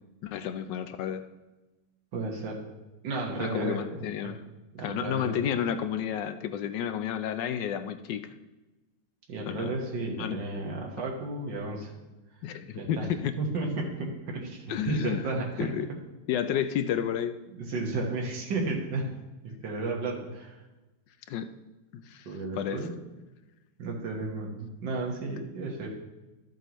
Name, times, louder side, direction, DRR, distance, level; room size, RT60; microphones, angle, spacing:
voice 1, 0.2-1.3 3.4-4.4 4.8-8.3 9.5-9.8 10.2-10.4 12.4-13.3 14.7-15.2 15.6-15.9 16.3-17.4 21.3-21.5 21.9-22.3 22.5-22.8, left 9 dB, 75° left, 10 dB, 1.2 m, -31 dB
voice 2, 2.1-2.6 3.0-4.4 4.7-5.4 9.3-11.9 12.8-13.1 13.4-15.7 17.5-19.1 19.4-20.6 22.3-22.9 23.8-25.9, right 3 dB, 70° right, -1 dB, 2.1 m, -33 dB
12.5 x 7.8 x 3.1 m, 1.1 s
omnidirectional pair, 2.0 m